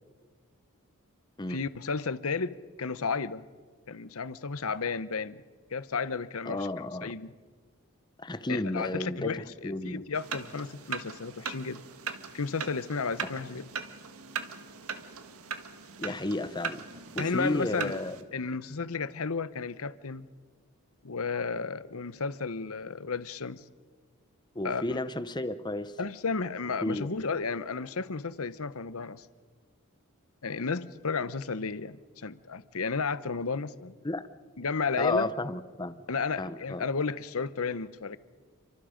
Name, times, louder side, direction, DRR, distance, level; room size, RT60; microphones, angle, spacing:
voice 1, 1.5-3.4 3.9-5.4 5.7-6.7 7.0-7.3 8.5-11.8 12.3-13.7 17.2-18.0 18.3-20.3 21.0-23.7 24.6-25.0 26.0-29.3 30.4-33.9 34.6-35.3 36.1-38.2, left 4 dB, 70° left, 0.9 m, -33 dB
voice 2, 6.5-7.1 8.2-10.0 13.2-13.3 16.0-16.8 17.1-18.2 24.5-26.0 26.8-27.1 34.0-34.3 35.0-36.0 36.4-36.9, left 2 dB, 20° left, 0.8 m, -32 dB
sound 1, 10.1-18.2, right 6 dB, 75° right, 1.6 m, -39 dB
29.5 x 25.0 x 5.2 m
head